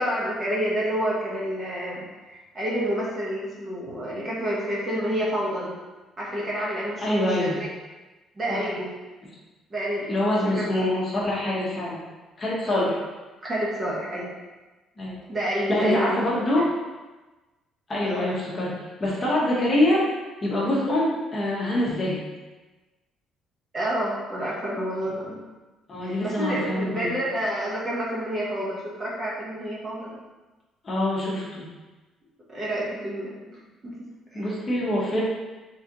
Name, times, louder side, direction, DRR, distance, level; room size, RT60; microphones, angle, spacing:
voice 1, 0.0-5.7 6.2-7.7 8.4-8.9 9.7-10.8 12.7-12.9 13.4-14.3 15.3-16.3 16.6-16.7 18.0-18.3 23.7-25.4 26.0-30.2 32.5-33.9 34.3-34.5, equal, 25° right, -6 dB, 1.0 m, -29 dB
voice 2, 7.0-7.6 8.5-8.6 10.1-12.0 12.4-12.9 15.0-15.2 15.7-16.7 17.9-18.7 19.0-20.1 20.4-22.2 25.9-27.1 30.8-31.6 34.3-35.2, left 1 dB, 25° left, -6 dB, 1.1 m, -25 dB
3.9 x 3.7 x 2.9 m, 1.2 s
cardioid pair, 150°, 0 cm